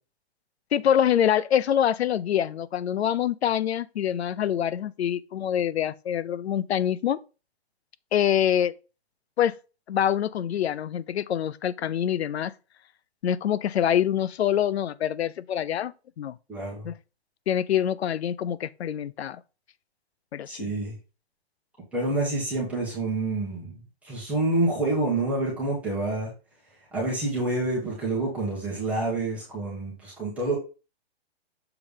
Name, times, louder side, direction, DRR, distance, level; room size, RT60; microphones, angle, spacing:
voice 1, 0.7-7.2 8.1-8.7 9.4-9.6 9.9-12.5 13.2-16.4 16.8-16.9 17.5-19.4 20.3-20.8, left 10 dB, 75° left, 0.6 m, -25 dB
voice 2, 16.5-16.9 20.5-20.9 21.9-23.8 24.0-26.3 26.9-30.6, right 2 dB, 5° right, 1.2 m, -27 dB
7.0 x 3.3 x 5.0 m
hypercardioid pair, 170°, 32 cm